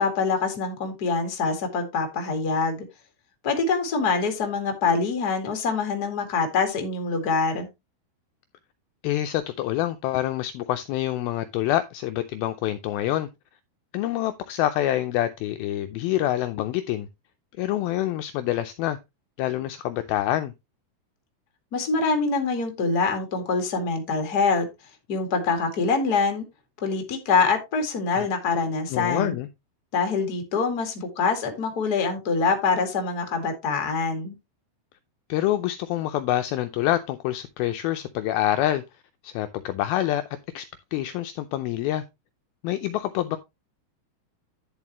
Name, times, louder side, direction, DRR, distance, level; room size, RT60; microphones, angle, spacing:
voice 1, 0.0-2.9 3.4-7.7 21.7-24.7 25.1-26.5 26.8-29.4 29.9-34.4, left 4 dB, 30° left, 1.9 m, -25 dB
voice 2, 9.0-13.3 13.9-17.1 17.6-19.0 19.4-20.5 28.2-28.3 28.9-29.5 35.3-38.8 39.2-40.2 40.5-42.0 42.6-43.4, left 13 dB, 80° left, 2.3 m, -26 dB
11.0 x 7.2 x 3.0 m
omnidirectional pair, 4.7 m